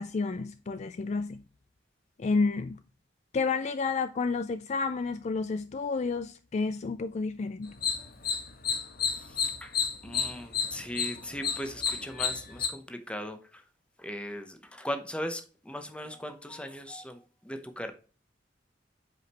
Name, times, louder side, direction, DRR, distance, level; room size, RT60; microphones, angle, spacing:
voice 1, 0.0-1.4 2.2-2.8 3.3-7.8, left 4 dB, 35° left, 0.3 m, -30 dB
sound 1, 7.7-12.7, left 6 dB, 55° left, 1.3 m, -31 dB
voice 2, 10.0-13.4 14.0-17.2 17.4-17.9, equal, 5° left, 0.8 m, -38 dB
8.2 x 5.0 x 2.9 m
head